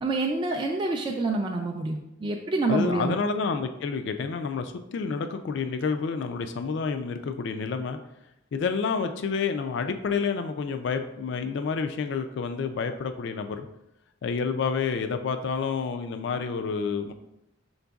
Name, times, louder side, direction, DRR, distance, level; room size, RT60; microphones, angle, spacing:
voice 1, 0.0-3.2, right 2 dB, 25° right, 1 dB, 0.3 m, -27 dB
voice 2, 2.7-8.0 8.5-13.7 14.2-17.1, left 5 dB, 60° left, 7 dB, 0.3 m, -29 dB
5.8 x 3.9 x 2.3 m, 0.88 s
head